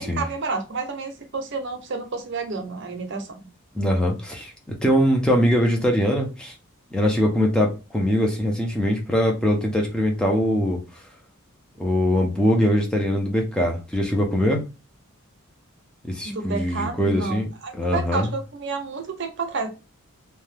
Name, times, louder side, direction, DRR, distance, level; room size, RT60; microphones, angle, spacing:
voice 1, 0.0-3.4 16.2-19.7, right 4 dB, 55° right, 0.6 m, -30 dB
voice 2, 3.7-6.5 6.9-10.8 11.8-14.6 16.0-17.5 17.8-18.3, equal, 5° left, 0.6 m, -22 dB
2.8 x 2.2 x 3.3 m
head